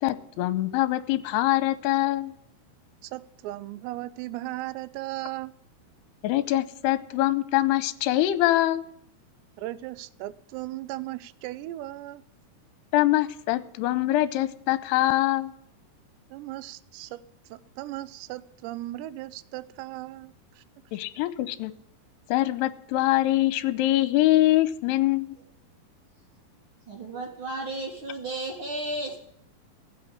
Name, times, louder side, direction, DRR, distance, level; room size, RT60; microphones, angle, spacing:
voice 1, 0.0-2.3 6.2-8.9 12.9-15.5 20.9-21.7 22.3-25.4, left 15 dB, 80° left, 2.7 m, -24 dB
voice 2, 3.0-5.5 9.6-12.2 16.3-17.2 17.5-20.6, right 16 dB, 90° right, 2.9 m, -37 dB
voice 3, 26.9-29.2, right 2 dB, 45° right, 1.9 m, -33 dB
16.0 x 6.3 x 10.0 m
omnidirectional pair, 4.9 m